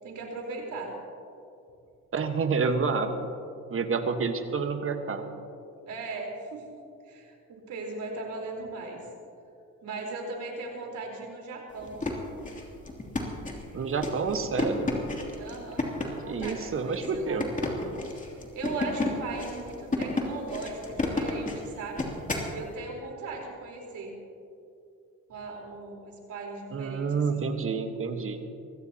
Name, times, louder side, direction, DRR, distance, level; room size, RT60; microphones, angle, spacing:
voice 1, 0.0-0.9 5.9-6.6 7.1-9.0 9.8-12.0 15.4-17.4 17.7-22.1 22.5-24.2 25.3-27.5, right 3 dB, 75° right, 0 dB, 4.2 m, -38 dB
voice 2, 2.1-3.1 3.7-5.2 13.7-15.0 16.3-17.5 26.7-28.4, right 5 dB, 45° right, 7 dB, 1.4 m, -28 dB
sound 1, 11.8-22.5, left 2 dB, 25° left, 2.9 m, -32 dB
24.0 x 16.5 x 2.9 m, 2.5 s
cardioid pair, 90°, 30 cm